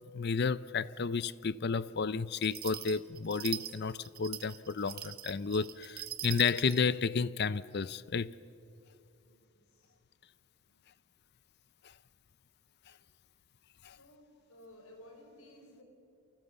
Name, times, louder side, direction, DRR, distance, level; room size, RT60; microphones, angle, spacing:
voice 1, 0.1-8.3 13.8-14.0, left 5 dB, 50° left, 0.6 m, -32 dB
sound 1, 2.4-6.8, right 13 dB, 45° right, 1.2 m, -42 dB
voice 2, 9.2-9.9 10.7-10.8 13.9-15.8, left 1 dB, 75° left, 5.5 m, -57 dB
29.0 x 25.0 x 7.0 m
head